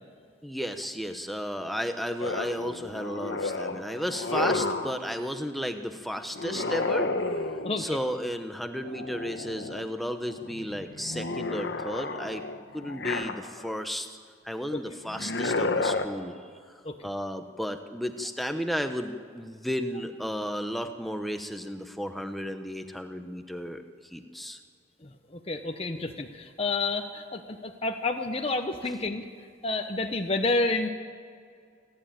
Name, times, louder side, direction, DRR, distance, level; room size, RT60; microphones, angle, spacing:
voice 1, 0.4-7.5 7.8-12.4 12.7-14.2 14.4-16.5 17.0-24.6, equal, ahead, 6 dB, 1.0 m, -33 dB
sound 1, 2.2-5.0 6.3-7.9 8.8-9.9 10.3-13.8 15.0-16.0, left 3 dB, 60° left, 1.2 m, -31 dB
voice 2, 25.5-29.2 29.6-30.9, left 2 dB, 30° left, 4 dB, 0.9 m, -29 dB
28.5 x 11.5 x 8.9 m, 2.2 s
head